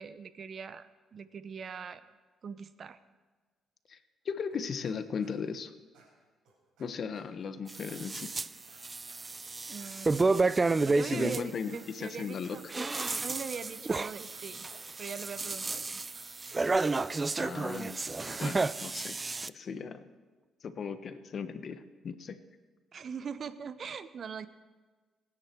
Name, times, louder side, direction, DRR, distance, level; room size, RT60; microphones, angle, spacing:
voice 1, 0.0-2.0 2.4-3.0 9.7-10.5 10.8-12.7 13.2-14.7 15.0-16.0 22.9-24.5, right 6 dB, 50° right, 13 dB, 0.8 m, -42 dB
voice 2, 4.2-5.7 6.8-8.3 11.0-12.7 17.4-18.0 18.4-19.2 19.5-20.0 20.6-22.4, left 6 dB, 55° left, 10 dB, 1.1 m, -37 dB
sound 1, 4.5-5.0 5.2-5.6 5.9-7.5 7.9-16.6, right 4 dB, 85° right, 5.0 m, -63 dB
sound 2, 7.7-8.5 8.8-11.4 12.5-19.5, right 3 dB, 25° right, 0.4 m, -31 dB
27.0 x 9.8 x 4.6 m, 1.4 s
cardioid pair, 90°, 0 cm